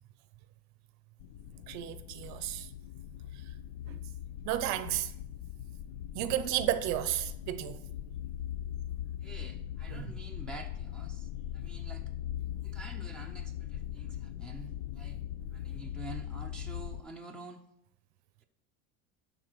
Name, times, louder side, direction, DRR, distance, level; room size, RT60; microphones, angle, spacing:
sound 1, 1.2-17.0, left 11 dB, 70° left, 0.6 m, -40 dB
voice 1, 1.7-2.7 3.3-3.5 3.9-4.1 4.4-5.1 6.1-7.8 9.9-10.1, right 13 dB, 55° right, 0.6 m, -33 dB
voice 2, 9.2-12.1 12.6-15.2 15.5-17.6, right 2 dB, 5° left, 0.6 m, -48 dB
11.5 x 3.9 x 6.1 m
cardioid pair, 165°, 34 cm